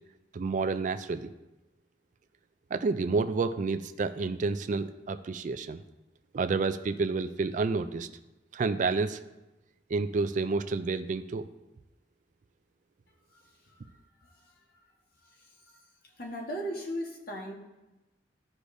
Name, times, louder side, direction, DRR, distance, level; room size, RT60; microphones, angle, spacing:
voice 1, 0.3-1.3 2.7-5.8 6.3-8.1 8.5-9.2 9.9-11.5, right 4 dB, 45° right, 11 dB, 0.4 m, -29 dB
voice 2, 16.2-17.5, equal, 60° left, 0 dB, 1.3 m, -36 dB
14.0 x 4.8 x 2.6 m, 1.0 s
head